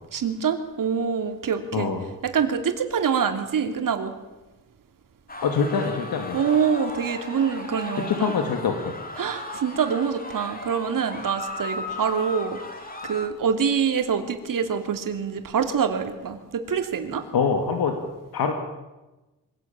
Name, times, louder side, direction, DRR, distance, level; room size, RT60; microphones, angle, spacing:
voice 1, 0.1-1.9 2.3-4.2 6.3-8.3 9.2-12.6 13.0-17.2, right 7 dB, 65° right, 7 dB, 2.9 m, -25 dB
voice 2, 1.7-2.0 5.4-6.4 8.0-8.9 17.3-18.0 18.3-18.5, left 5 dB, 80° left, 5 dB, 2.7 m, -24 dB
sound 1, 5.3-13.3, left 2 dB, 25° left, 3.3 m, -37 dB
24.5 x 17.5 x 8.9 m, 1.1 s
wide cardioid pair, 130°, 35 cm